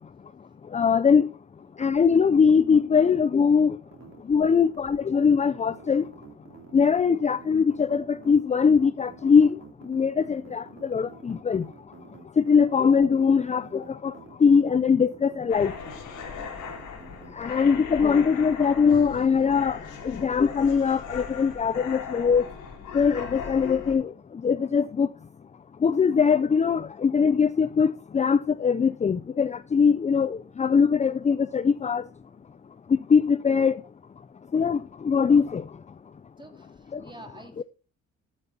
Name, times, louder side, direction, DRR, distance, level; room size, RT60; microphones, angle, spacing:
voice 1, 0.7-1.3 1.8-3.8 4.3-6.0 6.7-9.6 9.8-11.7 12.4-14.1 14.4-15.7 17.4-19.8 20.0-22.4 22.9-24.1 24.4-25.1 25.8-32.0 33.1-33.8 34.5-35.6 36.9-37.0 37.6-37.7, left 6 dB, 25° left, 0.5 m, -21 dB
sound 1, 3.9-17.3, right 7 dB, 60° right, 3.0 m, -48 dB
voice 2, 4.2-4.6 17.5-17.7 36.4-37.6, right 2 dB, 15° right, 2.7 m, -49 dB
sound 2, 15.5-23.9, left 6 dB, 85° left, 3.7 m, -38 dB
12.0 x 8.8 x 4.1 m
cardioid pair, 90°, 30 cm